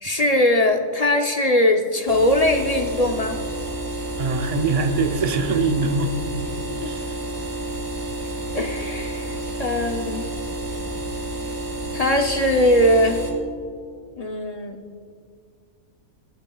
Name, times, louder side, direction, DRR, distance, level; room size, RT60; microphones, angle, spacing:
voice 1, 0.0-3.4 6.8-6.9 8.5-10.3 11.9-13.2 14.2-14.8, left 1 dB, 55° left, 4 dB, 0.4 m, -20 dB
sound 1, 2.1-13.3, right 1 dB, 65° right, 2.5 m, -30 dB
voice 2, 4.2-6.2 6.8-7.2, right 3 dB, 40° right, 6 dB, 0.5 m, -23 dB
18.0 x 12.0 x 2.3 m, 2.1 s
omnidirectional pair, 1.5 m